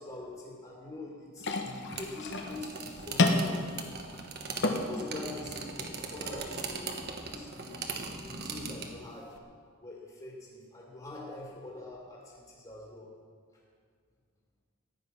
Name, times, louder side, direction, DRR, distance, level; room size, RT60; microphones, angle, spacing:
voice 1, 0.0-3.6 4.6-7.0 7.3-9.4 9.8-13.1, left 2 dB, 25° left, -4 dB, 2.4 m, -44 dB
sound 1, 1.4-9.4, left 2 dB, 55° left, 1.1 m, -34 dB
sound 2, 1.9-8.9, right 4 dB, 50° right, 1.3 m, -40 dB
15.0 x 10.0 x 5.7 m, 2.1 s
head